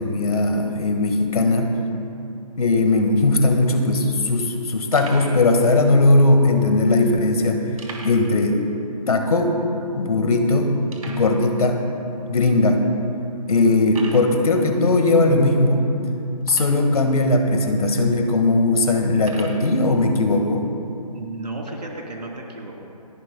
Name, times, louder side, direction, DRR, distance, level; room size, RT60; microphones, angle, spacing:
voice 1, 0.0-1.7 2.6-7.6 8.0-8.6 9.1-9.5 9.9-11.8 12.3-12.9 13.5-15.9 16.4-20.7, left 2 dB, 65° left, 4 dB, 1.7 m, -18 dB
sound 1, 4.9-5.4 6.2-6.3 7.8-8.4 8.6-8.7 9.2-9.3 9.9-10.0 10.9-11.3 12.1-12.2 12.8-12.9 13.9-14.3 16.4-17.0 17.8-17.9 19.2-19.6, right 3 dB, 55° right, 2.4 m, -39 dB
voice 2, 21.1-22.7, right 2 dB, 85° right, -1 dB, 3.3 m, -33 dB
28.5 x 11.0 x 2.2 m, 2.7 s
figure-of-eight pair, 160°, 21 cm